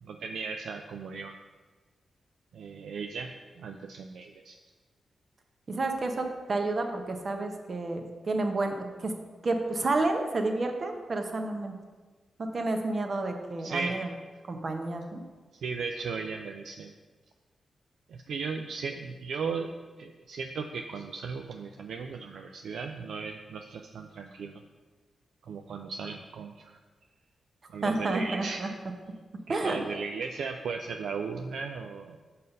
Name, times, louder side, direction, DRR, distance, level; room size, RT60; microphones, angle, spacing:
voice 1, 0.0-1.4 2.5-4.6 13.6-13.9 15.5-16.9 18.1-19.7 20.0-24.6 25.4-26.8 27.7-28.7 29.5-32.2, right 5 dB, 75° right, 4 dB, 0.3 m, -36 dB
voice 2, 5.7-9.1 9.4-11.7 12.5-14.1 14.5-15.2 27.8-28.7 29.5-29.8, right 2 dB, 55° right, 4 dB, 0.9 m, -30 dB
5.5 x 4.1 x 5.3 m, 1.4 s
supercardioid pair, 40°, 0 cm